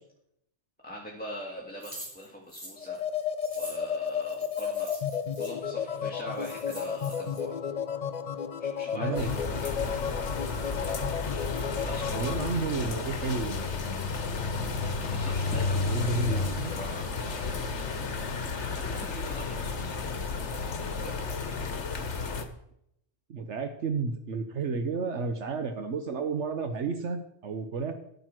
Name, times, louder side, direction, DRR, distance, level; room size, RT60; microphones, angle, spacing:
voice 1, 0.8-3.0 3.5-4.9 5.4-7.5 8.6-9.7 10.7-11.0 11.7-12.2 15.1-18.0 18.7-19.9 21.0-21.2, equal, 5° left, -3 dB, 2.0 m, -42 dB
sound 1, 1.8-5.5 6.0-6.1 6.3-7.4, right 1 dB, 45° right, 5.8 m, -45 dB
sound 2, 2.8-12.6, left 7 dB, 45° left, 0.6 m, -33 dB
voice 2, 8.9-9.3 12.1-13.7 15.7-16.7 23.3-27.9, right 4 dB, 70° right, 7 dB, 1.3 m, -32 dB
sound 3, 9.1-22.4, left 4 dB, 70° left, 1.5 m, -32 dB
12.0 x 9.1 x 6.1 m, 0.75 s
omnidirectional pair, 1.2 m